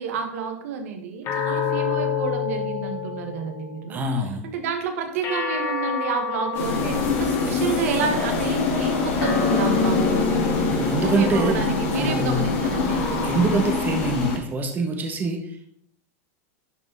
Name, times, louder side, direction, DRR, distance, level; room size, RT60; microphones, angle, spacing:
voice 1, 0.0-4.0 4.4-13.3, right 5 dB, 70° right, 5 dB, 1.6 m, -30 dB
sound 1, 1.3-3.8 5.2-7.8 9.2-11.8, left 5 dB, 40° left, 2.3 m, -28 dB
voice 2, 3.9-4.5 10.7-12.4 13.2-15.6, right 2 dB, 25° right, 3 dB, 1.3 m, -25 dB
sound 2, 6.5-14.4, left 4 dB, 55° left, 3.5 m, -24 dB
11.5 x 4.3 x 4.1 m, 0.67 s
supercardioid pair, 130°, 8 cm